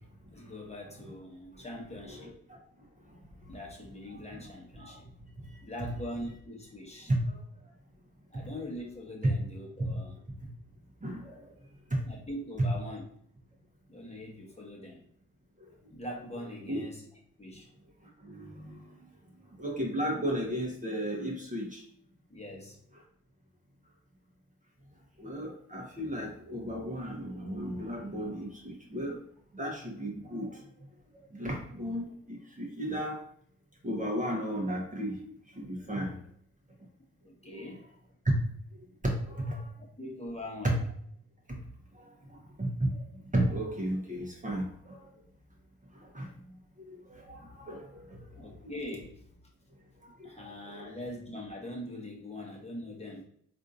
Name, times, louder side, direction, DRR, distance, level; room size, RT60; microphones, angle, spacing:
voice 1, 0.3-2.3 3.5-5.1 5.6-7.1 8.3-10.2 12.1-13.0 13.9-15.0 15.9-17.1 17.4-17.7 22.3-22.8 33.8-33.9 37.2-37.8 40.0-40.8 48.4-49.2 50.2-53.2, left 1 dB, 20° left, -2 dB, 1.1 m, -42 dB
voice 2, 2.2-2.6 4.8-5.0 5.5-5.6 7.1-7.4 9.8-9.9 10.4-10.5 11.0-11.5 15.6-15.7 16.7-16.8 18.2-18.8 19.6-21.8 25.2-29.2 29.5-30.6 31.2-33.2 33.8-36.2 37.5-37.7 38.2-38.4 39.0-39.7 40.6-40.8 41.5-41.6 41.9-43.0 43.3-45.1 45.9-46.3 46.8-48.5 50.2-51.0, right 1 dB, 20° right, -1 dB, 1.0 m, -34 dB
3.5 x 2.6 x 2.6 m, 0.64 s
hypercardioid pair, 40°, 35 cm